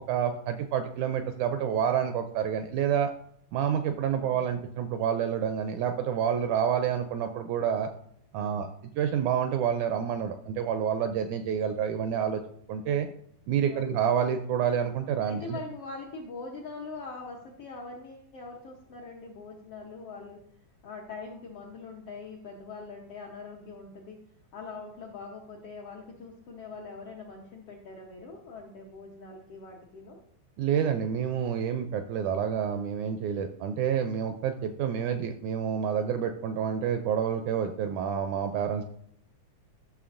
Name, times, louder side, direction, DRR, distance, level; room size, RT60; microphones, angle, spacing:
voice 1, 0.1-3.1 3.5-7.9 8.3-8.7 9.0-12.4 12.7-13.1 13.5-15.6 30.6-38.8, right 8 dB, 80° right, 7 dB, 1.7 m, -28 dB
voice 2, 4.1-4.5 8.3-8.7 12.8-13.1 13.7-13.9 15.2-20.4 20.8-24.2 24.5-30.2, left 4 dB, 75° left, -1 dB, 1.4 m, -43 dB
13.0 x 6.4 x 2.5 m, 0.67 s
omnidirectional pair, 3.8 m